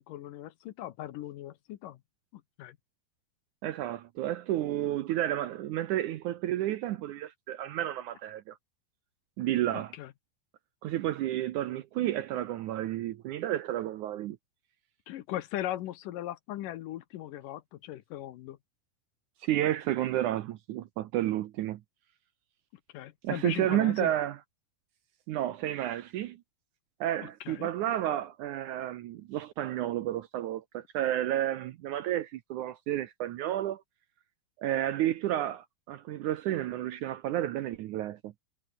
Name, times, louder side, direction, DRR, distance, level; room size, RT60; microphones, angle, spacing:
voice 1, 0.0-2.0 2.3-2.8 9.7-10.1 15.1-18.6 22.9-24.1 27.2-27.7, left 13 dB, 70° left, 2.4 m, -39 dB
voice 2, 3.6-8.6 9.4-9.9 10.8-14.4 19.4-21.8 23.2-24.4 25.3-26.4 27.0-33.8 34.6-38.3, right 13 dB, 70° right, 2.0 m, -31 dB
omnidirectional pair, 4.2 m